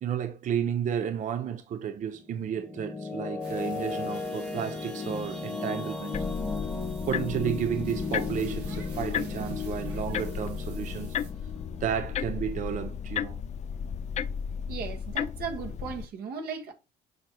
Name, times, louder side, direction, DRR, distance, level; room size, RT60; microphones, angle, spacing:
voice 1, 0.0-6.2 7.1-11.2 11.8-13.4, right 8 dB, 50° right, 0.7 m, -32 dB
sound 1, 2.1-13.2, left 4 dB, 5° left, 1.2 m, -36 dB
sound 2, 3.4-11.3, right 5 dB, 90° right, 2.2 m, -49 dB
sound 3, 6.1-16.1, left 8 dB, 45° left, 0.4 m, -34 dB
voice 2, 14.7-16.7, right 6 dB, 65° right, 1.5 m, -36 dB
6.6 x 5.6 x 2.9 m
cardioid pair, 110°, 17 cm